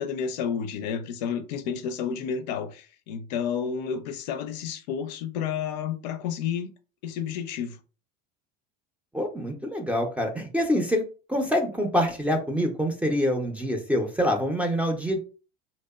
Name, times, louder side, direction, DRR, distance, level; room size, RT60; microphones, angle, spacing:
voice 1, 0.0-6.7 7.0-7.8, left 7 dB, 90° left, 0.4 m, -31 dB
voice 2, 9.1-15.2, equal, 5° right, 0.4 m, -26 dB
2.8 x 2.0 x 2.2 m
supercardioid pair, 125°, 21 cm